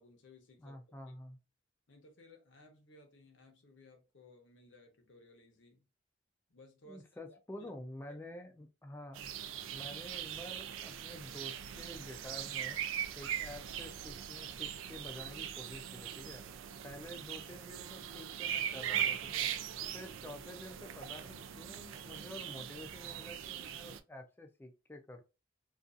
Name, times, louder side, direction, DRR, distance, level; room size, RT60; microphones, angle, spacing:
voice 1, 0.0-0.8 1.9-5.8 6.5-7.2 7.6-7.7 8.1-8.2 9.8-10.3 17.0-17.1, left 2 dB, 65° left, 0.7 m, -60 dB
voice 2, 0.6-1.4 6.8-9.3 9.7-12.8 13.2-16.4 16.8-19.5 19.9-25.2, left 1 dB, 10° left, 0.3 m, -49 dB
sound 1, 9.1-24.0, right 9 dB, 80° right, 0.3 m, -40 dB
2.5 x 2.3 x 2.4 m
head